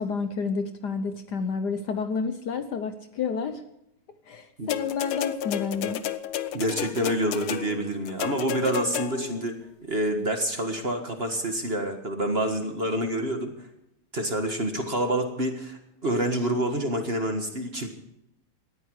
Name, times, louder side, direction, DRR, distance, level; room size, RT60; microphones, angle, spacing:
voice 1, 0.0-3.6 4.3-6.0, left 5 dB, 60° left, 9 dB, 1.3 m, -30 dB
sound 1, 4.7-9.4 10.4-10.5, left 11 dB, 80° left, 1.7 m, -32 dB
voice 2, 6.5-9.6 9.9-13.5 14.1-17.9, right 1 dB, 30° right, 5 dB, 1.6 m, -27 dB
19.0 x 13.5 x 4.8 m, 0.79 s
omnidirectional pair, 2.3 m